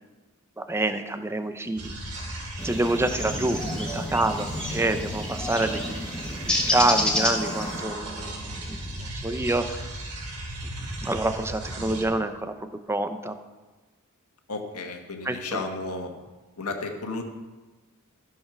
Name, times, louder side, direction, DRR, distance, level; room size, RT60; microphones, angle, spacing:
voice 1, 0.6-1.9 2.6-6.0 6.3-10.0 11.0-12.5 12.9-13.4 15.2-15.6, right 2 dB, 10° right, 9 dB, 0.6 m, -27 dB
sound 1, 1.8-12.0, right 1 dB, 90° right, 2.8 m, -35 dB
sound 2, 2.6-7.8, left 1 dB, 5° left, 1.4 m, -29 dB
voice 2, 14.5-16.1 16.6-17.2, left 3 dB, 80° left, 4 dB, 1.6 m, -33 dB
14.0 x 6.6 x 6.1 m, 1.2 s
head